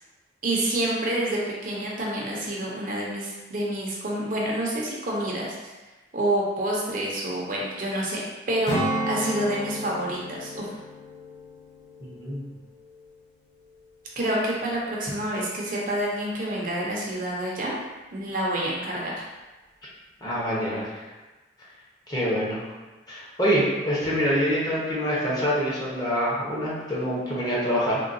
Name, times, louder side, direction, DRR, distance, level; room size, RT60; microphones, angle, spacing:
voice 1, 0.4-5.5 6.1-8.2 8.5-8.8 9.1-10.7 14.2-17.8 18.1-19.2, right 1 dB, 50° right, -4 dB, 0.6 m, -28 dB
Strum, 8.7-13.4 13.7-14.0, right 1 dB, 65° left, 0.6 m, -33 dB
voice 2, 12.0-12.4 20.2-20.9 22.1-22.6 23.1-28.0, equal, 20° left, -7 dB, 0.8 m, -25 dB
3.7 x 2.2 x 2.5 m, 1.2 s
head